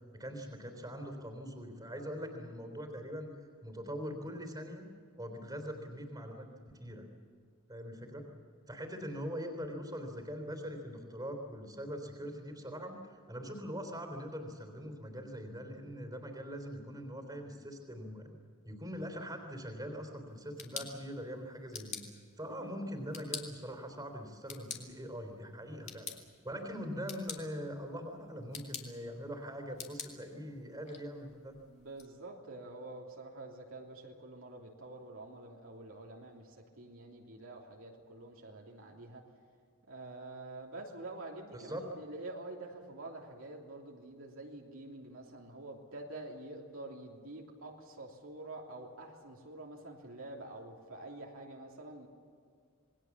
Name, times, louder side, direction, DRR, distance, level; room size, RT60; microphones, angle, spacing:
voice 1, 0.1-3.3 3.6-4.9 5.2-7.1 7.7-8.2 8.7-13.0 13.3-18.3 18.6-22.0 22.4-26.1 26.4-31.6 41.5-41.8, equal, 15° right, 4 dB, 3.6 m, -42 dB
sound 1, 20.3-32.1, left 6 dB, 30° left, 2.6 m, -49 dB
voice 2, 31.7-39.2 39.9-52.1, right 2 dB, 65° right, -1 dB, 3.0 m, -47 dB
27.5 x 21.0 x 7.4 m, 2.1 s
head